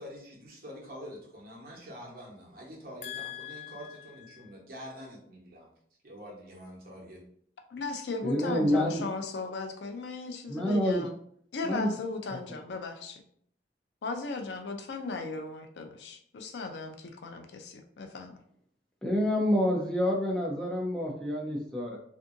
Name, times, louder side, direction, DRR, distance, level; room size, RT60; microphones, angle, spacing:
voice 1, 0.0-5.7 6.0-7.2, equal, 55° right, -3 dB, 0.9 m, -46 dB
voice 2, 3.0-4.5 7.7-11.1 11.5-13.2 14.0-18.4, left 4 dB, 80° left, 4 dB, 0.4 m, -37 dB
voice 3, 8.2-9.0 10.5-11.0 11.6-11.9 19.0-22.0, equal, 5° left, -3 dB, 0.5 m, -28 dB
2.6 x 2.6 x 2.5 m, 0.64 s
head